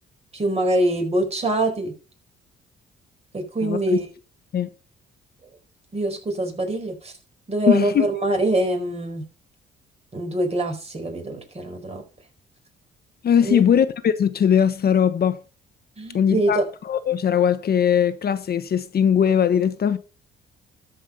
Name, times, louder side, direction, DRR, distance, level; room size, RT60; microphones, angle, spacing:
voice 1, 0.3-1.9 3.3-4.1 5.9-7.1 7.5-9.2 10.1-12.0 13.4-13.6 16.0-16.7, right 1 dB, 30° right, 4.6 m, -24 dB
voice 2, 7.7-8.1 13.2-15.4 16.1-16.6 16.9-20.0, left 8 dB, 50° left, 1.0 m, -20 dB
13.0 x 5.4 x 5.3 m
cardioid pair, 90°, 20 cm